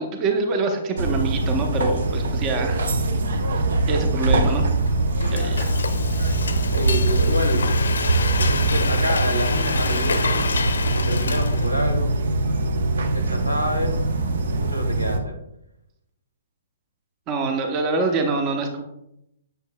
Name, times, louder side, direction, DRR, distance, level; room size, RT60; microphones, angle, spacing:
voice 1, 0.0-2.9 3.5-4.7 5.3-5.7 17.3-18.8, right 3 dB, 25° right, 4 dB, 0.8 m, -25 dB
sound 1, 1.0-15.2, right 2 dB, 55° right, 0.7 m, -23 dB
Frying (food), 4.9-11.9, left 3 dB, 60° left, 0.6 m, -28 dB
voice 2, 6.7-7.7 8.4-10.4 11.0-12.1 13.1-14.0 14.6-15.3, equal, 85° right, 3 dB, 1.3 m, -27 dB
8.0 x 6.7 x 2.2 m, 0.81 s
figure-of-eight pair, 120°, 0 cm